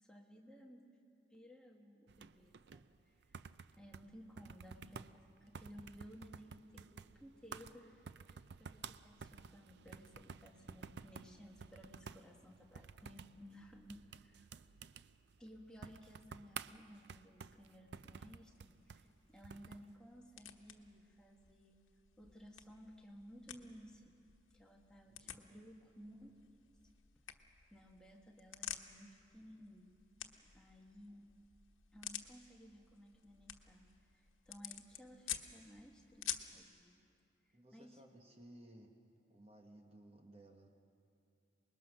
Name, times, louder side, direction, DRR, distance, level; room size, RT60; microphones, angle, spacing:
voice 1, 0.0-0.9 1.3-3.4 3.8-14.5 15.4-21.8 22.2-24.1 24.5-26.3 27.3-29.9 30.5-31.3 31.9-33.9 34.1-37.0 37.7-38.0, equal, 5° left, 0 dB, 1.5 m, -58 dB
sound 1, 2.1-19.9, right 6 dB, 55° right, 0.4 m, -53 dB
sound 2, 18.5-36.6, left 10 dB, 90° left, 1.1 m, -51 dB
voice 2, 25.0-25.4 37.5-39.0 39.3-40.7, right 1 dB, 30° right, 3 dB, 1.2 m, -59 dB
25.5 x 21.0 x 6.3 m, 2.6 s
head